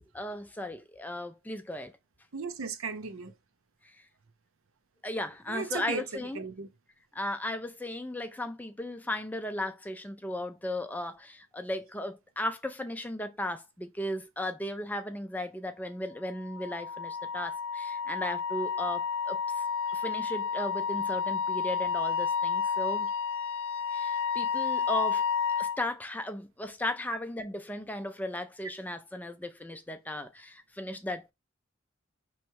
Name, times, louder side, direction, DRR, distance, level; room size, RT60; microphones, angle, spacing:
voice 1, 0.0-1.9 3.8-4.0 5.0-6.4 7.1-19.6 19.9-23.1 23.9-25.2 25.6-31.3, left 1 dB, 10° left, 0.4 m, -36 dB
voice 2, 2.3-3.3 5.5-6.7, right 4 dB, 75° right, 0.7 m, -36 dB
Wind instrument woodwind instrument, 16.3-25.8, left 6 dB, 70° left, 0.5 m, -31 dB
4.6 x 3.1 x 3.0 m
head